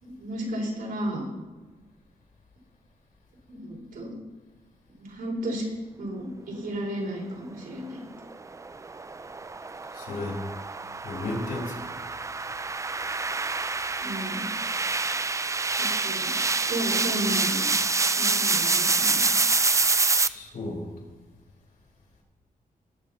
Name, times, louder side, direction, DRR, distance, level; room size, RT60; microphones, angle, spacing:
voice 1, 0.0-1.3 3.5-4.2 5.0-5.6 6.0-8.0 14.0-14.4 15.8-16.4 16.7-17.7 18.2-19.2, right 1 dB, 80° right, -2 dB, 4.3 m, -33 dB
sound 1, 8.2-20.3, right 3 dB, 20° right, 0.4 m, -27 dB
voice 2, 9.9-10.4 11.0-11.9 20.2-20.9, left 2 dB, 75° left, -2 dB, 4.4 m, -33 dB
19.5 x 7.3 x 4.3 m, 1.3 s
wide cardioid pair, 110°, 15 cm